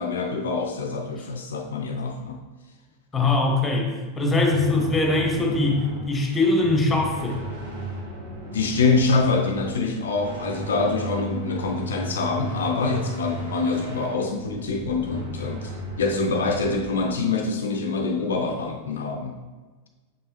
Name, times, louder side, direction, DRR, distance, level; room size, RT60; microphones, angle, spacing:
voice 1, 0.0-2.4 4.7-4.9 8.5-15.7 16.0-19.4, left 4 dB, 65° left, 4 dB, 0.5 m, -25 dB
voice 2, 3.1-7.4, left 2 dB, 15° left, 1 dB, 1.4 m, -22 dB
sound 1, 4.5-16.9, right 2 dB, 75° right, 2.1 m, -36 dB
6.8 x 5.3 x 3.0 m, 1.3 s
figure-of-eight pair, 90°, 0 cm